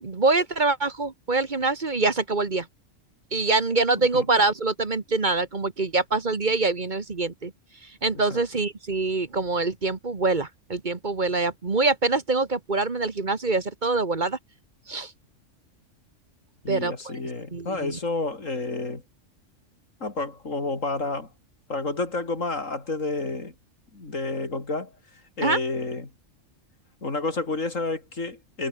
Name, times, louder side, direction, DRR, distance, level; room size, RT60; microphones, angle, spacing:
voice 1, 0.0-2.7 3.3-7.5 7.8-14.4 14.9-15.1 16.7-17.1 17.5-18.0 25.4-25.6, right 3 dB, 40° right, 1.6 m, -25 dB
voice 2, 16.6-19.0 20.0-21.3 21.7-23.5 23.9-24.9 25.4-26.1 27.0-28.7, left 3 dB, 85° left, 4.1 m, -30 dB
omnidirectional pair, 1.3 m